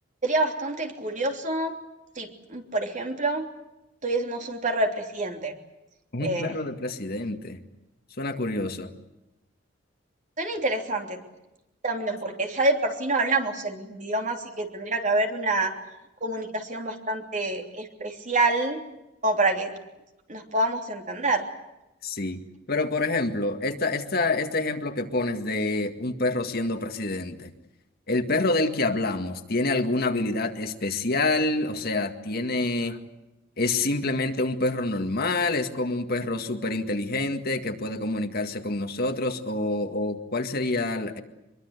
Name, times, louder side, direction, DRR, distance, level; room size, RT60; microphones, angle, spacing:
voice 1, 0.2-1.8 2.1-3.5 4.0-5.5 6.2-6.6 10.4-11.2 11.8-15.7 16.2-18.8 19.2-19.7 20.3-21.5, right 2 dB, 40° right, 3 dB, 3.2 m, -27 dB
voice 2, 6.1-7.6 8.2-8.9 22.0-22.4 22.7-27.5 28.1-33.0 33.6-41.2, left 2 dB, 55° left, 6 dB, 2.0 m, -27 dB
24.5 x 23.0 x 8.2 m, 0.95 s
head